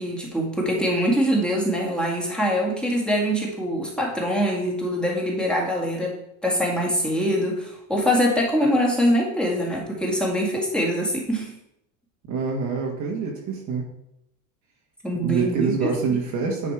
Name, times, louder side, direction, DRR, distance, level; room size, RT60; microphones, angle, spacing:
voice 1, 0.0-6.1 6.4-11.5 15.0-15.9, equal, ahead, -3 dB, 2.1 m, -23 dB
voice 2, 12.3-13.8 15.2-16.7, right 5 dB, 35° right, -1 dB, 1.6 m, -25 dB
9.8 x 5.1 x 4.7 m, 0.80 s
supercardioid pair, 130°, 47 cm